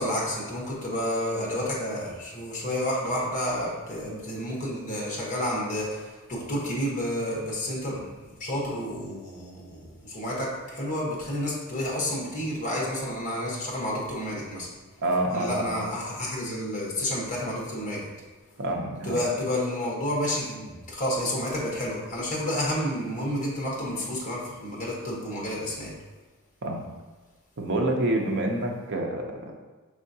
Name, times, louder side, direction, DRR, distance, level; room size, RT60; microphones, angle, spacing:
voice 1, 0.0-14.7 15.3-18.1 19.0-26.0, left 1 dB, 35° left, -3 dB, 1.1 m, -30 dB
voice 2, 15.0-15.8 18.6-19.2 26.6-26.9 27.6-29.5, right 1 dB, 55° right, 2 dB, 0.6 m, -27 dB
5.3 x 3.4 x 2.7 m, 1.3 s
head